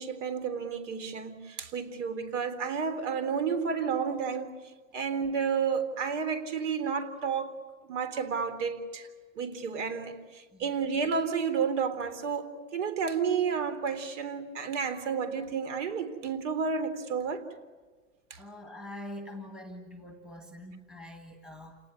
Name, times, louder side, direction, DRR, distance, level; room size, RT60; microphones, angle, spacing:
voice 1, 0.0-4.5 4.9-9.1 9.4-17.4 18.3-18.4, right 6 dB, 60° right, 11 dB, 3.8 m, -31 dB
voice 2, 18.4-21.8, left 1 dB, ahead, 4 dB, 1.7 m, -44 dB
29.0 x 19.0 x 9.7 m, 1.4 s
supercardioid pair, 165°, 40 cm